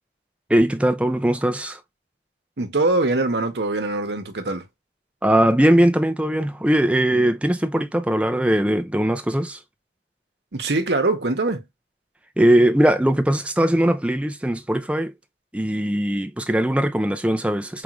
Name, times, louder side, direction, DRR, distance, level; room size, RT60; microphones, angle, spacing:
voice 1, 0.5-1.8 5.2-9.6 12.4-15.1 15.5-17.8, right 1 dB, 5° right, 0.4 m, -20 dB
voice 2, 2.6-4.7 10.5-11.6, right 2 dB, 70° right, 0.9 m, -23 dB
4.9 x 2.5 x 2.9 m
head